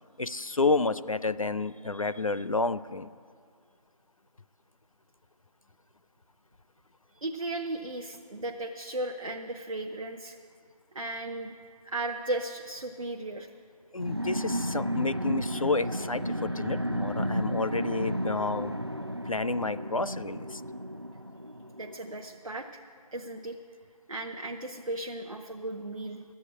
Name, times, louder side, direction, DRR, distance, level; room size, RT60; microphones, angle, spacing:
voice 1, 0.2-3.1 13.9-18.8 19.3-20.6, left 3 dB, 60° left, 14 dB, 0.4 m, -30 dB
voice 2, 7.1-10.4 10.9-11.5 11.8-13.5 21.8-22.7 23.1-23.6 24.1-26.2, right 2 dB, 55° right, 3 dB, 0.8 m, -35 dB
sound 1, 14.0-22.1, equal, 40° right, 0.4 m, -33 dB
12.0 x 8.4 x 8.5 m, 2.1 s
figure-of-eight pair, 180°, 20 cm